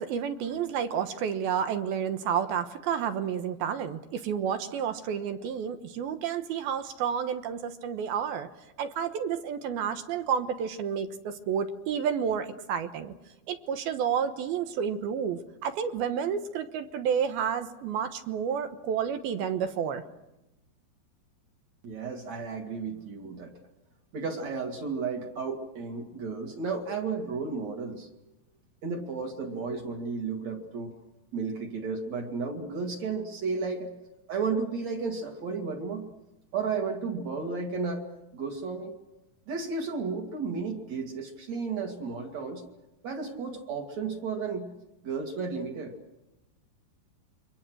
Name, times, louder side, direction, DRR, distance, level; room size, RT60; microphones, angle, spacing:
voice 1, 0.0-8.5 8.8-13.1 13.5-20.0, right 7 dB, 80° right, 9 dB, 3.0 m, -30 dB
voice 2, 21.8-23.5 24.1-28.1 28.8-30.9 31.3-33.9 34.3-36.0 36.5-38.0 38.3-39.0 39.5-42.6 43.0-44.7 45.0-46.0, right 4 dB, 50° right, 2 dB, 3.0 m, -33 dB
28.5 x 24.0 x 6.2 m, 0.96 s
omnidirectional pair, 4.4 m